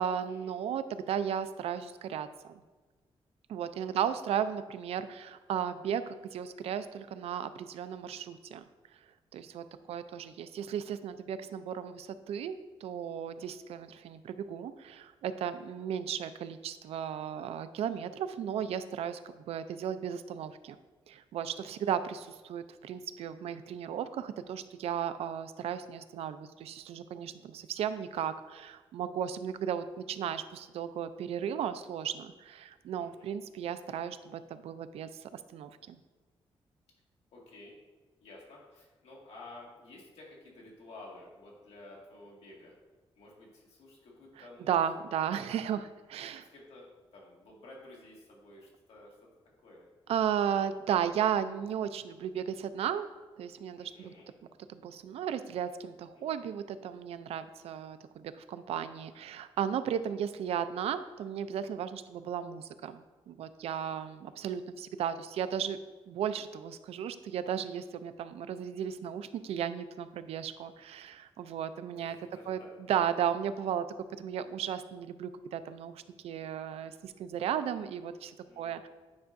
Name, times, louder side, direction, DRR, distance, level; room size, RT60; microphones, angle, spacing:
voice 1, 0.0-2.6 3.5-8.6 9.3-20.8 21.1-36.0 44.7-46.4 50.1-53.1 53.4-54.1 54.7-65.8 66.1-72.2 72.5-72.6 72.9-73.8 74.2-78.9, right 9 dB, 90° right, 12 dB, 0.4 m, -35 dB
voice 2, 9.5-10.2 15.4-15.8 22.2-22.3 33.0-33.3 37.3-37.8 38.2-42.7 43.2-45.8 46.2-49.3 49.6-49.9 50.3-50.4 53.8-54.3 56.1-56.3 63.8-64.4 71.9-72.7 78.5-78.8, left 2 dB, 85° left, -3 dB, 1.9 m, -53 dB
9.4 x 5.5 x 2.6 m, 1.3 s
wide cardioid pair, 170°, 10 cm